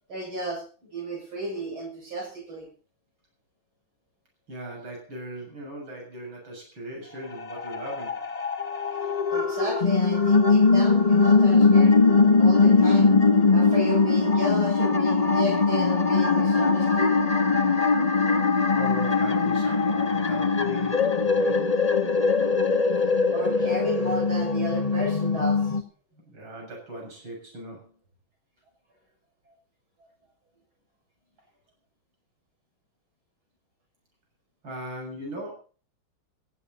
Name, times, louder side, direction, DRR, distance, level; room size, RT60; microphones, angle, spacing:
voice 1, 0.1-0.6 0.9-2.7 9.3-12.0 12.4-13.1 13.5-17.2 23.3-25.8, right 1 dB, 90° right, 0 dB, 8.0 m, -33 dB
voice 2, 4.5-8.3 18.2-18.4 18.7-21.7 26.1-27.9 34.6-35.5, right 1 dB, 70° right, 0 dB, 8.0 m, -39 dB
sound 1, 7.3-25.8, left 4 dB, 25° left, 1.0 m, -21 dB
17.5 x 15.5 x 4.3 m, 0.39 s
omnidirectional pair, 2.2 m